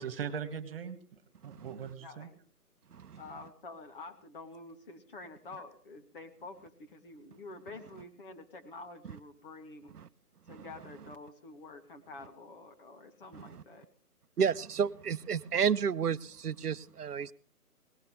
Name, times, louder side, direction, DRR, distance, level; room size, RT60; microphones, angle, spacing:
voice 1, 0.0-2.3, right 7 dB, 40° right, 1.9 m, -40 dB
voice 2, 2.0-2.3 3.1-10.0 10.4-13.9, left 3 dB, 35° left, 2.5 m, -48 dB
voice 3, 14.4-17.3, right 7 dB, 80° right, 0.9 m, -31 dB
19.5 x 18.5 x 3.3 m
hypercardioid pair, 160°, 46 cm